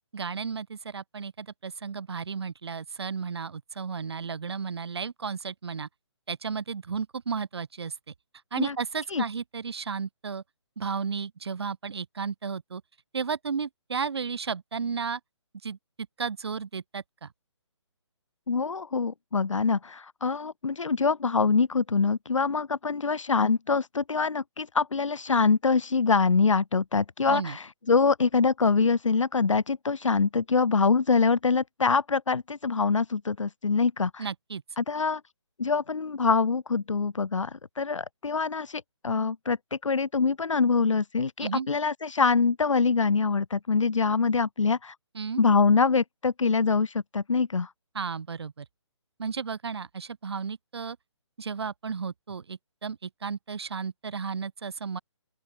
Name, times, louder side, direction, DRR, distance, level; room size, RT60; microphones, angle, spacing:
voice 1, 0.1-5.9 6.3-8.1 8.5-10.4 10.8-12.8 13.1-15.2 15.6-15.8 16.2-17.3 27.3-27.6 34.2-34.6 41.4-41.7 45.1-45.4 47.9-48.7 49.2-51.0 51.4-55.0, right 5 dB, 55° right, 2.1 m, -33 dB
voice 2, 18.5-34.3 34.8-35.2 35.6-44.9 45.4-47.7, left 4 dB, 85° left, 2.5 m, -24 dB
open air
hypercardioid pair, 170°, 16 cm